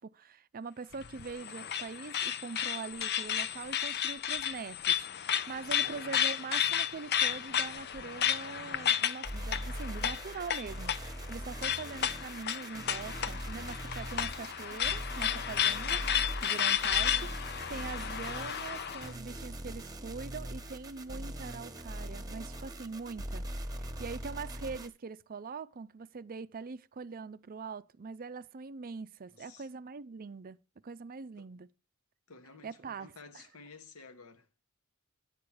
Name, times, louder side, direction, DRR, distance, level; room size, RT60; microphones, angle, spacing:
voice 1, 0.0-17.3 17.7-30.6 30.8-31.7 32.6-33.4, right 4 dB, 40° right, 0.5 m, -43 dB
sound 1, 0.9-19.1, left 9 dB, 50° left, 0.6 m, -33 dB
voice 2, 5.6-6.0 16.5-16.9 29.3-29.7 31.4-31.5 32.3-34.5, left 4 dB, 70° left, 1.3 m, -53 dB
sound 2, 9.2-24.9, right 1 dB, 15° right, 1.2 m, -41 dB
10.5 x 8.6 x 4.7 m
head